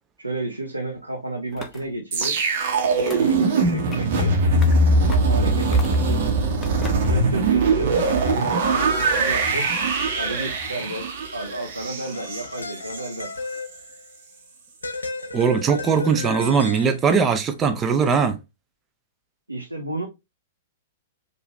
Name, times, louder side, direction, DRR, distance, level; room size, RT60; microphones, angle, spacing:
voice 1, 0.2-2.4 2.8-4.4 5.1-6.3 7.0-9.7 10.2-11.1 11.3-13.3 19.5-20.1, right 2 dB, 85° right, 0.8 m, -31 dB
sound 1, 1.5-1.9 2.2-2.7 3.1-3.4 3.9-4.2 4.6-4.7 5.1-5.4 5.7-6.2 6.6-7.1, left 4 dB, 15° left, 0.8 m, -39 dB
sound 2, 2.1-13.2 13.5-13.8, right 3 dB, 50° right, 1.2 m, -21 dB
sound 3, 12.1-14.1 14.8-17.3, left 3 dB, 75° left, 0.7 m, -34 dB
voice 2, 15.3-18.4, right 6 dB, 20° right, 0.6 m, -20 dB
4.7 x 2.6 x 3.2 m
figure-of-eight pair, 105°, 0 cm